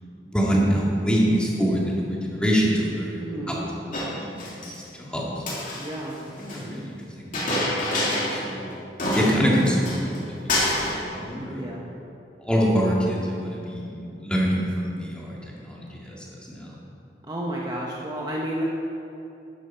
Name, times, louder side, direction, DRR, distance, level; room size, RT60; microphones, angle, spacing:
voice 1, 0.2-5.4 6.2-7.3 7.9-8.7 9.1-11.6 12.4-16.8, equal, 5° left, -4 dB, 2.2 m, -26 dB
voice 2, 3.2-3.7 5.7-6.2 11.5-11.8 17.2-18.6, right 1 dB, 25° right, -3 dB, 1.0 m, -31 dB
Chink clink, 3.9-4.8 5.4-6.6 7.3-8.5 8.7-8.8 9.0-10.2 10.5-11.0, left 1 dB, 50° left, 2.9 m, -27 dB
13.0 x 10.5 x 4.5 m, 2.8 s
head